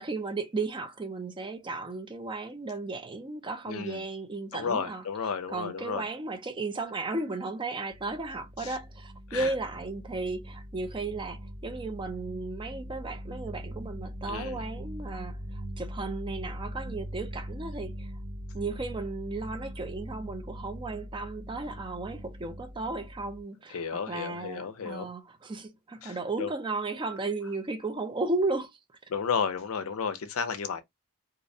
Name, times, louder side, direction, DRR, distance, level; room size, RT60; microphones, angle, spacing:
voice 1, 0.0-5.0 5.5-18.1 18.5-28.8, right 3 dB, 20° right, 0.4 m, -35 dB
voice 2, 3.7-4.0 4.5-6.0 8.6-8.8 9.3-9.5 14.3-14.6 23.7-25.1 26.0-26.5 29.1-30.8, left 6 dB, 65° left, 0.5 m, -33 dB
sound 1, 7.9-23.4, equal, 70° right, 0.6 m, -41 dB
2.4 x 2.1 x 2.6 m
head